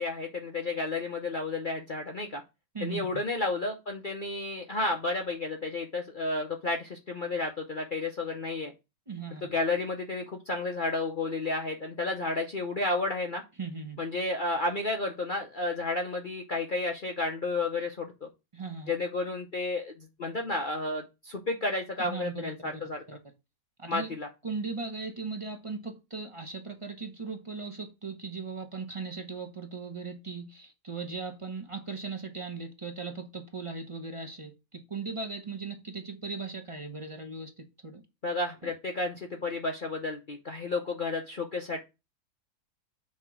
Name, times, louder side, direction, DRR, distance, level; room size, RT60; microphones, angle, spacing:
voice 1, 0.0-2.4 2.8-8.7 9.4-13.4 14.0-18.3 18.9-23.0 23.9-24.3 38.2-41.8, left 2 dB, 40° left, 0.8 m, -32 dB
voice 2, 9.1-9.4 13.6-14.0 18.5-18.9 22.0-22.5 23.1-23.2 23.8-24.1 24.4-38.0 38.6-38.7, right 4 dB, 25° right, 0.8 m, -38 dB
7.5 x 3.0 x 6.0 m
omnidirectional pair, 1.6 m